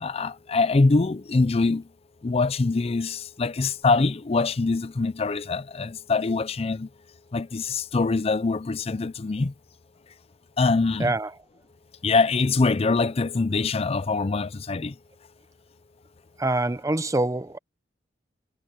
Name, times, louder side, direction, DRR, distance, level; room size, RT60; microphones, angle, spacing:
voice 1, 0.0-1.8 2.2-6.9 7.3-9.5 10.6-11.1 12.0-14.9, left 3 dB, 35° left, 0.5 m, -24 dB
voice 2, 11.0-11.3 16.4-17.6, right 2 dB, 20° right, 0.6 m, -25 dB
head